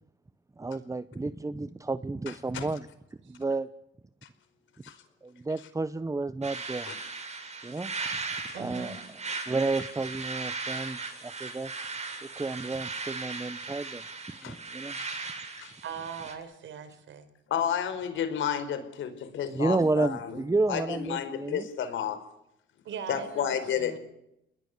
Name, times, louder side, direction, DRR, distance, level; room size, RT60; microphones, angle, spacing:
voice 1, 0.6-2.9 3.3-3.7 5.2-6.9 7.6-7.9 8.6-9.0 9.5-11.7 12.2-14.0 14.4-15.1 15.5-15.7 19.5-21.6, right 3 dB, 15° right, 14 dB, 1.0 m, -31 dB
sound 1, 6.4-16.3, right 4 dB, 35° right, 7.6 m, -38 dB
voice 2, 8.5-9.0 15.8-17.3 22.9-24.0, right 7 dB, 75° right, 11 dB, 5.1 m, -40 dB
voice 3, 17.5-20.4 20.7-22.2 23.1-24.0, left 8 dB, 75° left, 11 dB, 4.9 m, -31 dB
29.5 x 21.0 x 6.9 m, 0.81 s
cardioid pair, 90°, 20 cm